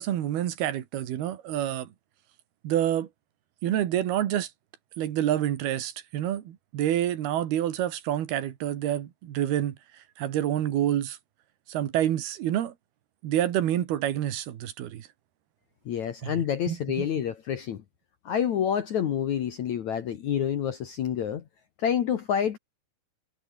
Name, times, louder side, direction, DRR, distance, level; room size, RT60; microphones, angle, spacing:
voice 1, 0.0-1.9 2.6-3.1 3.6-4.5 5.0-9.8 10.2-11.2 11.7-12.7 13.2-15.1 16.2-17.1, right 11 dB, 65° right, 3.6 m, -28 dB
voice 2, 15.9-17.8 18.3-21.4 21.8-22.6, left 9 dB, 60° left, 2.0 m, -28 dB
omnidirectional pair, 5.2 m